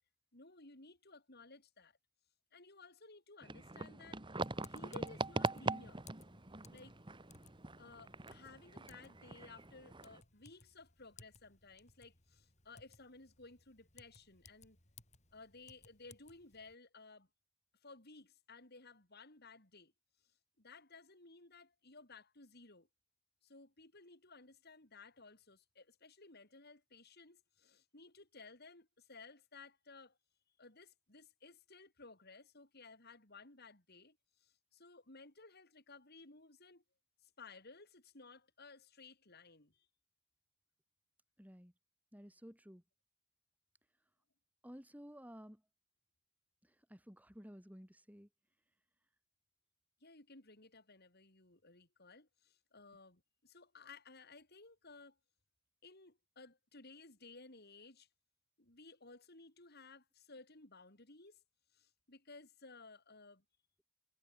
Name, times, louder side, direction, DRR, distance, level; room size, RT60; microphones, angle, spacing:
voice 1, 0.3-2.0 2.5-4.2 4.7-6.0 6.7-7.0 7.8-14.8 15.3-17.3 17.8-19.9 20.6-22.9 23.4-30.2 30.6-36.8 37.2-39.9 50.0-55.2 55.8-58.1 58.6-61.4 61.7-63.4, left 3 dB, 50° left, 4.1 m, -58 dB
sound 1, 3.4-10.2, right 3 dB, 25° right, 1.8 m, -42 dB
Typing, 4.4-16.7, left 4 dB, 35° left, 6.1 m, -63 dB
voice 2, 41.4-41.7 42.1-42.8 44.6-45.6 46.6-48.3, equal, 5° right, 7.7 m, -54 dB
head